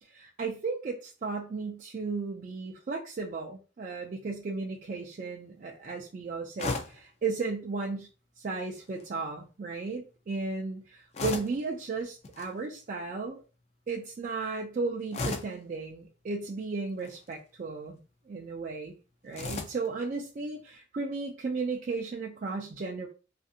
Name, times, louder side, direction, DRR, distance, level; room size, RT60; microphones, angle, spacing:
voice 1, 0.0-8.1 8.4-13.4 13.9-18.0 18.3-19.0 19.2-23.1, right 4 dB, 40° right, 0 dB, 0.3 m, -35 dB
sound 1, 6.6-7.0 8.7-9.1 11.1-11.7 12.2-12.5 15.1-15.6 16.9-17.3 19.3-19.9, left 3 dB, 35° left, 0.4 m, -35 dB
2.5 x 2.5 x 2.6 m, 0.34 s
head